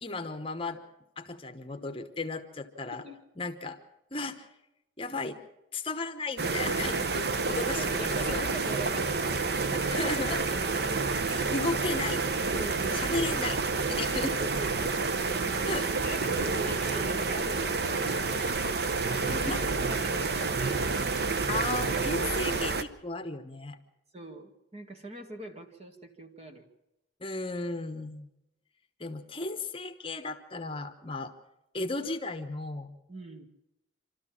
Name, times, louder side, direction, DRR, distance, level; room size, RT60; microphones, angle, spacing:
voice 1, 0.0-0.8 1.2-3.0 3.4-3.8 4.1-4.5 5.0-5.4 5.7-8.5 9.7-10.6 11.3-12.3 12.9-13.6 13.9-14.3 15.7-15.9 19.5-19.6 21.5-23.8 27.2-28.3 29.0-31.3 31.7-33.0, left 2 dB, 30° left, 7 dB, 1.1 m, -35 dB
sound 1, 6.4-22.8, right 4 dB, 60° right, 0.8 m, -29 dB
voice 2, 7.6-9.3 12.5-13.2 14.3-15.1 15.8-18.0 19.0-20.9 24.1-26.6 33.1-33.5, right 1 dB, 35° right, 4 dB, 1.9 m, -42 dB
26.5 x 13.0 x 7.4 m, 0.91 s
head